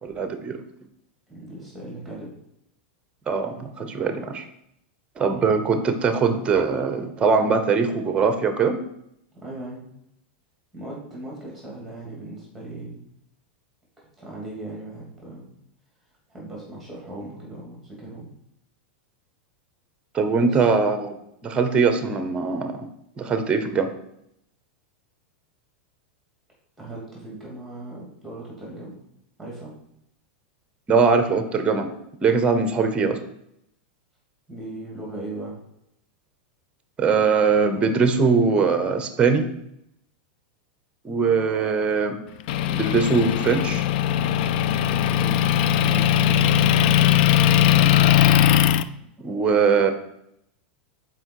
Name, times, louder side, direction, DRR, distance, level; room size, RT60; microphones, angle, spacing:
voice 1, 0.0-0.6 3.3-4.5 5.2-8.7 20.1-22.8 23.2-23.9 30.9-31.9 32.2-33.2 37.0-39.5 41.0-42.2 42.7-43.9 47.6-47.9 49.2-49.9, right 5 dB, 20° right, 8 dB, 0.9 m, -21 dB
voice 2, 1.3-2.3 9.3-9.9 10.7-13.0 14.2-15.5 16.3-18.3 20.4-20.7 26.8-29.0 29.4-29.8 34.5-35.6 44.7-46.6, right 2 dB, ahead, -4 dB, 2.7 m, -38 dB
Motor vehicle (road) / Engine, 42.5-48.8, left 11 dB, 60° left, 0.3 m, -19 dB
6.2 x 4.6 x 4.7 m, 0.77 s
supercardioid pair, 135°, 6 cm